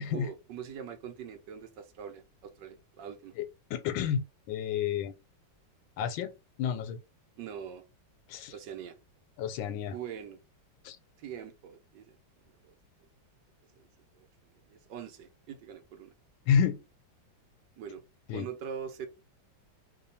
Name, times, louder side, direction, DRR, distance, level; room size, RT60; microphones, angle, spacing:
voice 1, 0.0-3.3 7.4-7.8 8.5-9.0 9.9-10.4 11.2-12.2 12.6-12.7 13.7-13.8 14.1-16.1 17.8-18.0 18.3-19.1, right 8 dB, 70° right, 1.3 m, -43 dB
voice 2, 3.4-5.1 6.0-6.3 6.6-7.0 8.3-8.5 9.4-10.0 10.8-11.0 16.5-16.8 18.3-18.5, left 7 dB, 85° left, 1.4 m, -30 dB
3.2 x 2.3 x 4.1 m
omnidirectional pair, 2.1 m